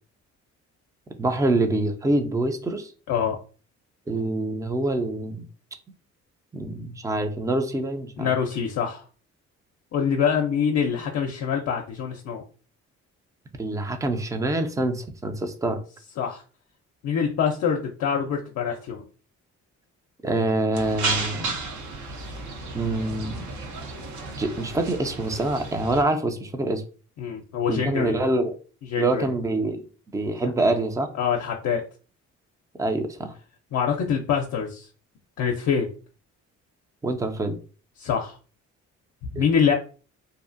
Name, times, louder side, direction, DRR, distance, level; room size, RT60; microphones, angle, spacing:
voice 1, 1.2-2.9 4.1-5.4 6.5-8.3 13.6-15.8 20.2-21.5 22.7-23.5 24.4-26.8 27.7-28.5 29.0-29.8 30.1-31.1 32.8-33.3 37.0-37.6 39.4-39.5, right 2 dB, 10° right, 7 dB, 0.4 m, -25 dB
voice 2, 3.1-3.4 8.2-9.0 9.9-12.4 16.2-16.4 17.0-19.0 27.2-28.2 28.9-29.3 31.2-31.8 33.7-34.9 35.4-35.9 38.0-38.4 39.3-39.7, left 7 dB, 60° left, 1 dB, 0.5 m, -25 dB
sound 1, 20.7-26.0, right 3 dB, 75° right, 0.7 m, -33 dB
2.6 x 2.4 x 2.5 m, 0.37 s
cardioid pair, 90°, 30 cm